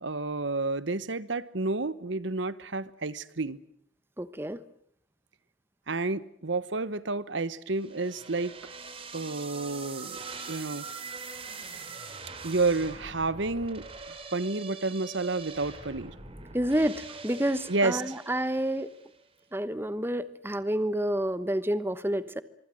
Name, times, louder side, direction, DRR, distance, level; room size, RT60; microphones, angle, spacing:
voice 1, 0.0-3.6 5.9-8.5 9.1-10.2 10.5-10.9 11.2-11.3 12.4-13.9 14.3-16.1 17.7-18.0, right 3 dB, 70° right, 16 dB, 1.1 m, -30 dB
voice 2, 4.2-4.6 16.5-18.9 19.5-22.4, right 1 dB, 10° right, 14 dB, 1.0 m, -29 dB
sound 1, 7.8-19.1, right 4 dB, 30° right, 3.7 m, -43 dB
25.0 x 24.0 x 7.6 m, 0.68 s
head